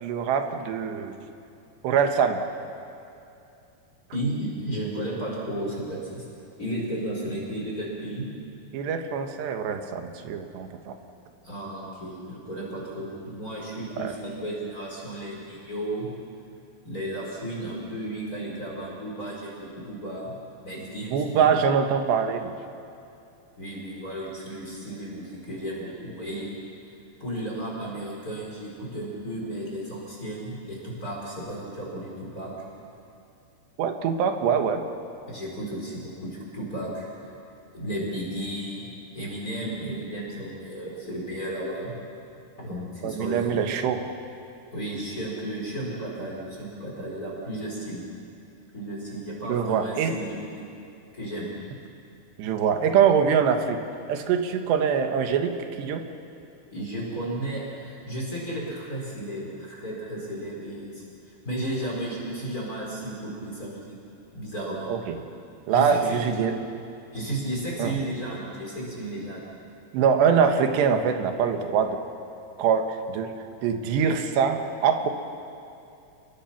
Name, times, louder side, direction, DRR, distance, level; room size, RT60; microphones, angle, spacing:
voice 1, 0.0-1.2 1.8-2.4 8.7-10.9 14.0-14.1 21.1-22.6 33.8-34.8 43.0-44.0 49.5-50.2 52.4-53.8 54.1-56.0 64.9-65.2 65.7-66.6 67.8-68.0 69.9-72.0 72.6-73.3 73.6-75.1, right 7 dB, 90° right, 6 dB, 3.6 m, -24 dB
voice 2, 4.1-6.2 6.6-8.2 11.4-16.1 16.8-20.3 20.6-21.5 23.6-26.5 27.2-32.5 35.3-37.3 37.7-38.9 39.1-41.9 42.6-43.6 44.7-48.0 48.7-50.7 51.1-51.5 56.7-64.0 64.3-64.9 65.7-66.5 67.1-69.4, right 1 dB, 20° left, -5 dB, 5.2 m, -33 dB
30.0 x 22.5 x 6.0 m, 2.6 s
omnidirectional pair, 4.8 m